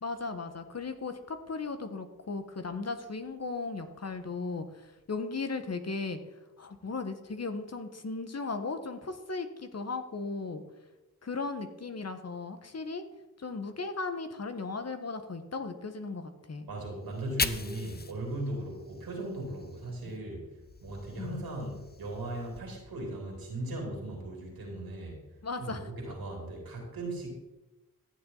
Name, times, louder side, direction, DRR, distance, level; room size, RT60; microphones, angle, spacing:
voice 1, 0.0-6.2 6.6-10.6 11.2-13.1 13.4-16.7 20.0-20.1 21.2-21.4 25.4-25.9, left 4 dB, 45° left, 8 dB, 1.4 m, -36 dB
voice 2, 16.7-20.5 20.8-25.2 25.6-27.4, right 1 dB, 85° right, 0 dB, 3.5 m, -38 dB
Fire, 17.0-20.2 20.5-22.6, left 4 dB, 25° left, 0.8 m, -39 dB
15.0 x 7.4 x 4.0 m, 1.0 s
cardioid pair, 45°, 35 cm